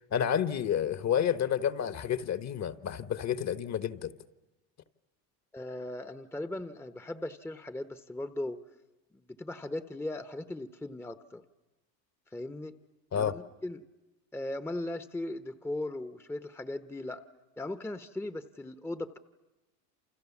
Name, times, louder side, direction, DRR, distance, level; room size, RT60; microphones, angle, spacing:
voice 1, 0.1-4.1 13.1-13.3, left 9 dB, 35° left, 1.3 m, -30 dB
voice 2, 5.5-8.6 9.3-11.4 12.3-12.8 13.1-13.8 14.3-17.2 17.6-19.2, left 1 dB, 5° left, 1.0 m, -38 dB
28.5 x 28.5 x 7.2 m
supercardioid pair, 100°, 49 cm